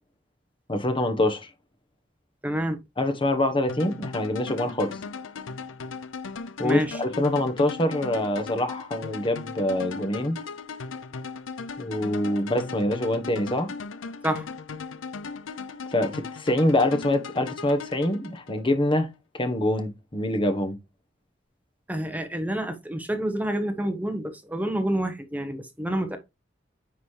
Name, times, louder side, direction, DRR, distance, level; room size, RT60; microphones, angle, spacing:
voice 1, 0.7-1.5 3.0-5.0 6.6-10.4 11.8-13.7 15.9-19.1 19.3-20.8, left 1 dB, 25° left, 1.2 m, -25 dB
voice 2, 2.4-2.8 6.6-7.0 14.2-14.5 21.9-26.2, right 1 dB, 10° right, 1.3 m, -28 dB
sound 1, 3.7-18.7, left 5 dB, 80° left, 0.6 m, -38 dB
9.7 x 4.2 x 3.3 m
head